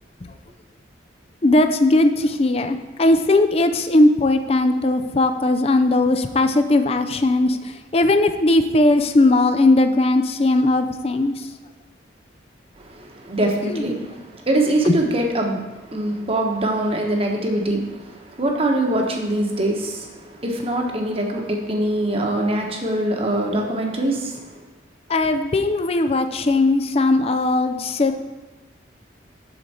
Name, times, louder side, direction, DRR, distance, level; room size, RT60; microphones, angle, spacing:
voice 1, 1.4-11.5 13.6-13.8 14.8-15.0 25.1-28.2, left 2 dB, 30° left, 8 dB, 0.5 m, -18 dB
voice 2, 12.9-14.1 14.5-15.6 15.9-18.0 18.3-20.1 20.4-24.4, right 1 dB, 30° right, 1 dB, 1.1 m, -23 dB
7.9 x 6.7 x 4.3 m, 1.2 s
head